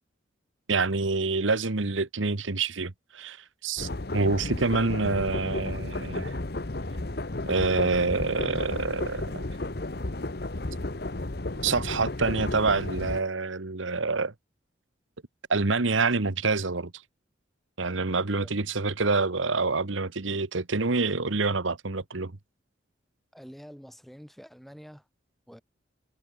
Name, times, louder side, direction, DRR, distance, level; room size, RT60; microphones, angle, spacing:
voice 1, 0.7-3.4 3.6-6.3 7.5-9.4 11.6-14.3 15.5-16.9 17.8-22.3, right 3 dB, 85° right, 1.3 m, -27 dB
sound 1, 3.8-13.2, left 2 dB, 55° left, 1.2 m, -33 dB
voice 2, 23.3-25.1 25.5-25.6, equal, ahead, 4.5 m, -47 dB
head